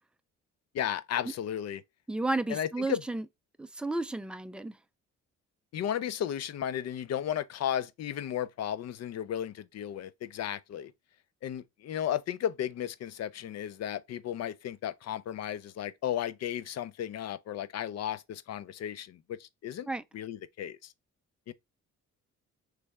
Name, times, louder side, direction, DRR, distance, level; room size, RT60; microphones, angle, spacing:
voice 1, 0.7-1.8 2.5-3.0 5.7-10.9 11.4-19.9 20.1-20.9 21.5-21.6, left 10 dB, 60° left, 0.5 m, -34 dB
voice 2, 2.1-3.2 3.6-4.8 19.9-20.0, right 2 dB, 5° right, 0.4 m, -32 dB
3.3 x 3.2 x 4.6 m
cardioid pair, 90°, 30 cm